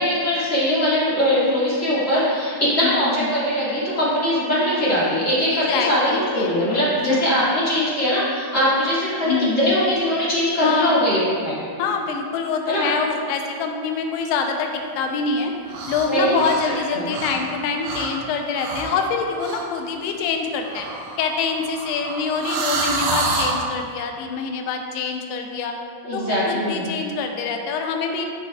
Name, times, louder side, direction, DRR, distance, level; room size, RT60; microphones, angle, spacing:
voice 1, 0.0-11.6 12.7-12.9 16.1-16.4 16.9-17.0 26.0-26.8, equal, 30° left, -10 dB, 1.6 m, -21 dB
voice 2, 2.8-3.4 5.5-6.8 7.1-7.2 9.2-9.8 10.6-11.0 11.8-15.5 15.9-20.9 21.2-25.8 26.1-28.3, left 5 dB, 90° left, 3 dB, 2.7 m, -25 dB
sound 1, 15.7-16.1 16.3-17.5 17.8-18.1 18.5-19.0 19.4-19.6 20.6-23.6, right 3 dB, 75° right, 2.5 m, -27 dB
13.5 x 6.4 x 2.4 m, 2.2 s
omnidirectional pair, 4.6 m